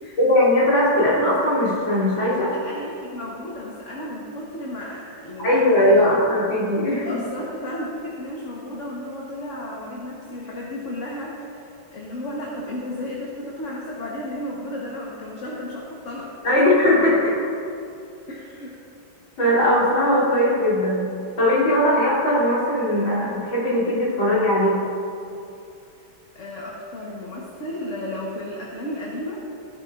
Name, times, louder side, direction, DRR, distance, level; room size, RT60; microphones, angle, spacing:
voice 1, 0.2-2.5 5.4-7.1 16.4-17.4 19.4-21.1 21.4-24.8, left 1 dB, 75° left, -7 dB, 3.8 m, -19 dB
voice 2, 2.4-6.1 7.0-16.7 18.3-18.8 26.3-29.4, left 1 dB, 45° left, -4 dB, 1.3 m, -33 dB
15.5 x 11.0 x 2.5 m, 2.6 s
omnidirectional pair, 2.2 m